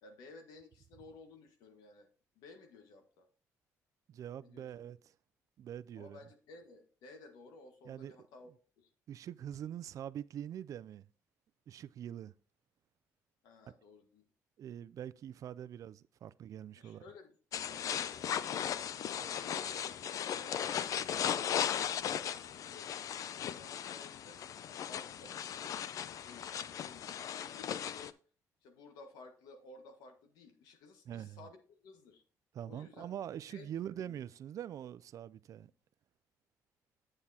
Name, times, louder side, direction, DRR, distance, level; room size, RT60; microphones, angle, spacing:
voice 1, 0.0-2.1 2.3-3.3 4.4-4.8 5.9-8.5 8.8-8.9 13.4-14.2 16.8-18.4 19.1-22.9 23.4-24.5 24.8-25.8 26.0-28.1 28.6-32.2 32.6-33.1 33.5-34.2, left 3 dB, 85° left, 1.6 m, -56 dB
voice 2, 4.1-5.0 5.6-6.2 7.9-8.1 9.1-11.1 11.7-12.3 14.6-17.0 31.1-31.4 32.5-35.7, right 10 dB, 60° right, 0.4 m, -44 dB
sound 1, 17.5-28.1, left 9 dB, 60° left, 0.5 m, -37 dB
8.7 x 8.0 x 2.8 m
cardioid pair, 90°, 6 cm